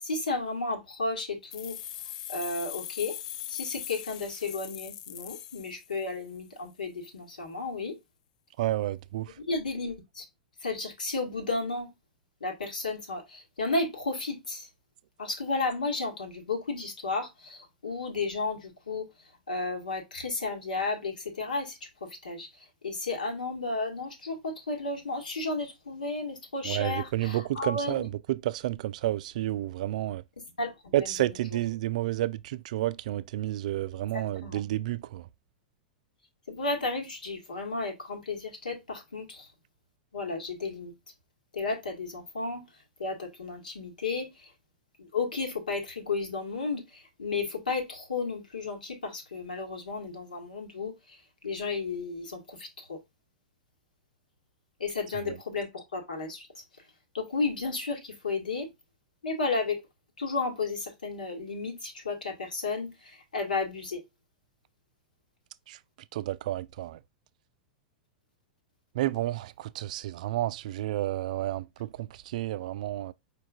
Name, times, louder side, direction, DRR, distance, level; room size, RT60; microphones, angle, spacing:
voice 1, 0.0-1.8 2.3-3.2 3.5-8.0 9.5-10.3 10.6-11.9 12.4-14.7 15.2-19.1 19.5-28.1 30.4-31.6 33.9-34.6 36.5-39.5 40.1-40.9 41.5-42.7 43.0-44.5 45.0-53.0 54.8-56.6 57.1-58.7 59.2-59.8 60.2-64.0, left 3 dB, 80° left, 1.7 m, -33 dB
sound 1, 1.5-6.3, left 12 dB, 55° left, 0.4 m, -40 dB
voice 2, 8.6-9.3 26.6-30.2 30.9-35.3 55.3-55.4 65.7-65.8 66.1-67.0 68.9-73.1, right 14 dB, 60° right, 0.4 m, -31 dB
4.9 x 4.5 x 2.4 m
figure-of-eight pair, 100°, 4 cm